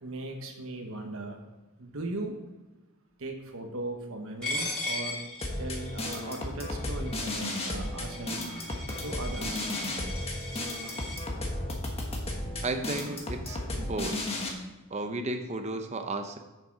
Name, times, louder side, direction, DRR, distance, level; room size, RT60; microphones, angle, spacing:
voice 1, 0.0-1.4 1.8-2.3 3.2-5.2 5.6-8.3 9.0-9.7, right 2 dB, 65° right, 3 dB, 1.2 m, -38 dB
Coin (dropping), 4.4-11.2, left 1 dB, 5° left, 3.4 m, -38 dB
sound 1, 5.4-14.5, left 1 dB, 25° left, 1.3 m, -34 dB
voice 2, 12.6-14.2 14.9-16.4, right 2 dB, 30° right, 6 dB, 0.6 m, -33 dB
8.6 x 6.7 x 4.7 m, 1.1 s
head